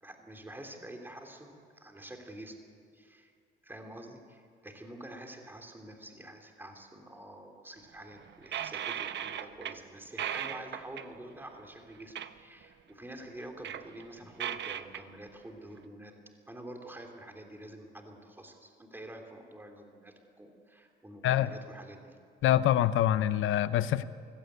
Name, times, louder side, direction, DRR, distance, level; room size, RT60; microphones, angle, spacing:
voice 1, 0.0-2.6 2.9-3.3 3.6-16.1 16.5-22.2, right 1 dB, 10° right, 3 dB, 3.3 m, -47 dB
sound 1, 8.0-9.8 10.1-11.2 12.1-12.3 12.6-12.7 13.3-15.0, right 10 dB, 65° right, 1.0 m, -37 dB
voice 2, 22.4-24.0, left 12 dB, 80° left, 14 dB, 0.9 m, -25 dB
24.5 x 16.5 x 8.3 m, 2.3 s
cardioid pair, 90°, 20 cm